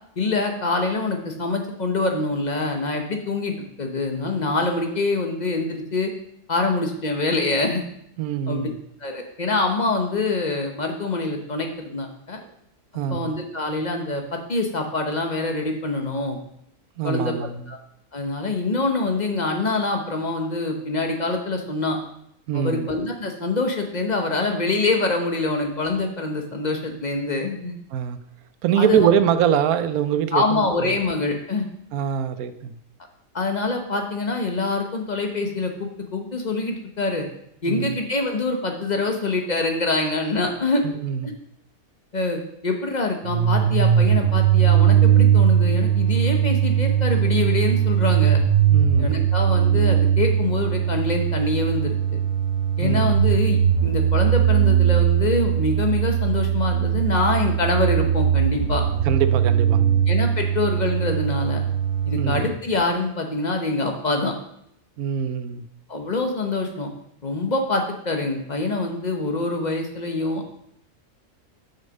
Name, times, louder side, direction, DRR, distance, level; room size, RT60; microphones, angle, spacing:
voice 1, 0.2-6.1 6.5-7.9 8.5-8.7 9.0-12.4 13.1-16.4 17.0-17.3 17.7-17.8 18.1-22.0 22.5-27.7 28.8-29.1 30.3-31.6 33.3-37.3 37.6-40.8 41.2-41.3 42.1-48.4 49.0-52.2 52.8-58.8 60.1-61.6 62.0-64.3 65.9-66.9 67.2-70.4, left 3 dB, 35° left, 3 dB, 0.9 m, -25 dB
voice 2, 8.2-8.8 12.4-12.5 12.9-13.3 17.0-17.7 22.5-22.9 27.9-28.2 28.6-31.0 31.9-32.8 37.6-38.0 40.8-41.4 48.7-49.3 52.8-53.2 59.0-60.1 62.2-62.6 65.0-65.7, right 9 dB, 90° right, 11 dB, 1.1 m, -24 dB
sound 1, 43.2-62.4, right 9 dB, 60° right, 0.9 m, -20 dB
6.5 x 5.7 x 5.2 m, 0.73 s
omnidirectional pair, 1.5 m